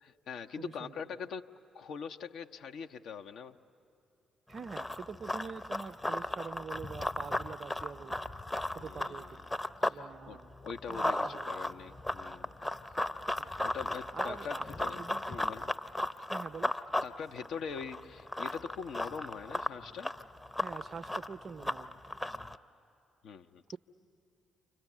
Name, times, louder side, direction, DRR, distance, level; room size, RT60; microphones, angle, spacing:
voice 1, 0.0-1.5 1.7-3.6 8.8-9.5 9.8-12.6 13.6-15.0 15.3-15.7 17.0-20.1 23.2-23.6, left 6 dB, 60° left, 6 dB, 0.7 m, -43 dB
voice 2, 0.6-0.9 4.5-8.2 8.8-9.4 9.8-10.5 10.9-11.6 13.4-13.5 14.1-14.7 15.0-15.5 16.3-16.7 20.6-22.2, right 5 dB, 45° right, 15 dB, 0.6 m, -45 dB
Run, 4.5-10.0 10.3-22.6, left 1 dB, 15° left, 0.7 m, -36 dB
29.5 x 25.5 x 7.3 m, 2.7 s
figure-of-eight pair, 40°, 0 cm